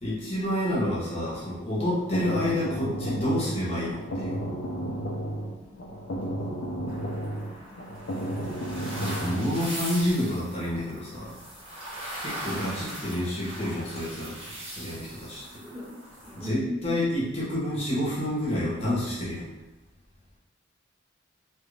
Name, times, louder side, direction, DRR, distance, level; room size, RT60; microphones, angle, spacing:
voice 1, 0.0-4.4 9.0-11.4 12.2-15.6 16.3-19.5, left 1 dB, 30° left, -7 dB, 0.9 m, -29 dB
sound 1, 1.7-9.5, right 1 dB, 60° left, 0.5 m, -33 dB
sound 2, 6.9-16.5, right 1 dB, 30° right, 1.1 m, -40 dB
voice 2, 15.4-16.9, left 2 dB, ahead, -13 dB, 1.2 m, -39 dB
2.9 x 2.4 x 3.3 m, 1.0 s
head